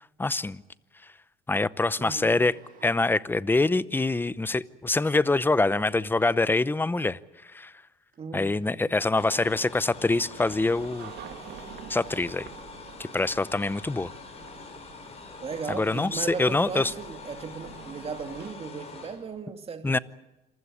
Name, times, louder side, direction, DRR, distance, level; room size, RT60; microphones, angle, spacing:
voice 1, 0.2-0.6 1.5-2.5 2.8-7.7 8.3-11.1 11.9-12.5 13.1-14.1 15.7-16.9 19.8-20.0, left 3 dB, 10° left, 0.7 m, -25 dB
voice 2, 2.0-2.4 8.2-8.6 15.4-20.0, right 5 dB, 35° right, 2.4 m, -37 dB
sound 1, 2.3-3.0 3.4-4.7 5.8-6.6 6.8-6.9 7.6-7.7 8.1-8.2 8.6-9.3 10.4-11.0 12.0-12.4 13.1-13.7, right 6 dB, 55° right, 6.1 m, -59 dB
sound 2, 9.2-19.4, left 4 dB, 40° left, 6.1 m, -45 dB
sound 3, 10.4-18.5, right 11 dB, 70° right, 2.0 m, -48 dB
27.0 x 15.5 x 9.9 m
cardioid pair, 110°, 17 cm